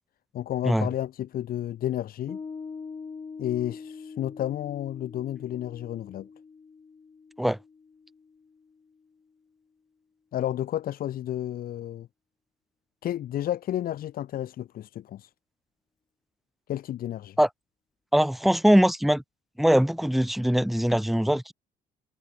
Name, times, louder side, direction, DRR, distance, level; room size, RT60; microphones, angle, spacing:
voice 1, 0.3-2.4 3.4-6.3 10.3-12.1 13.0-15.3 16.7-17.4, left 12 dB, 60° left, 1.5 m, -31 dB
Piano, 2.3-9.0, left 5 dB, 30° left, 4.5 m, -44 dB
voice 2, 18.1-19.2 19.6-21.5, equal, ahead, 0.7 m, -21 dB
cardioid pair, 110°, 17 cm